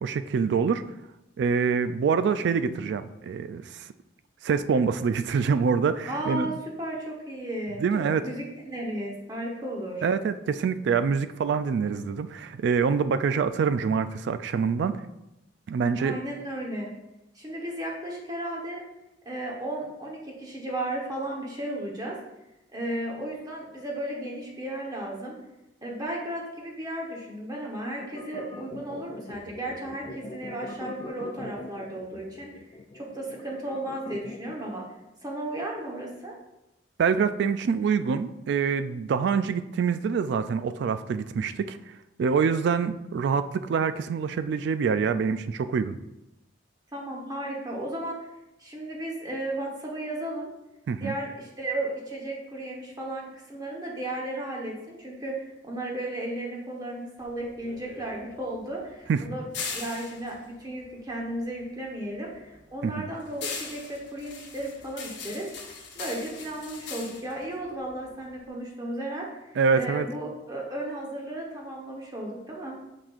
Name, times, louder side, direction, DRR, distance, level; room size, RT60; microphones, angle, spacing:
voice 1, 0.0-0.8 1.4-3.9 4.4-6.5 7.8-8.2 10.0-15.0 15.7-16.2 37.0-41.8 42.2-46.0 50.9-51.1 59.1-59.3 62.8-63.1 69.6-70.0, right 6 dB, 65° right, 12 dB, 0.3 m, -25 dB
voice 2, 6.1-7.8 8.2-10.1 16.0-16.9 17.3-18.8 19.2-22.2 22.7-25.3 25.8-32.6 32.9-34.8 35.2-36.3 46.9-48.2 48.6-50.5 51.0-59.4 59.7-72.8, right 1 dB, 20° right, -2 dB, 1.1 m, -34 dB
sound 1, 28.0-34.7, left 2 dB, 30° left, 0.3 m, -42 dB
sound 2, 57.2-61.7 62.0-68.5, left 5 dB, 65° left, 1.0 m, -40 dB
6.6 x 6.0 x 2.4 m, 0.92 s
head